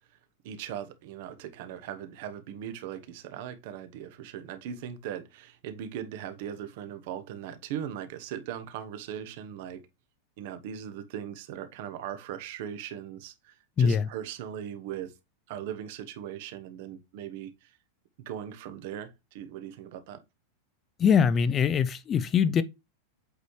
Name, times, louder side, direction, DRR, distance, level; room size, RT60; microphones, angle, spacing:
voice 1, 0.4-9.8 10.4-15.1 15.5-17.8 18.2-20.2, right 9 dB, 50° right, 1.0 m, -39 dB
voice 2, 21.0-22.6, left 7 dB, 20° left, 0.4 m, -22 dB
8.2 x 4.1 x 3.1 m
supercardioid pair, 165°, 0 cm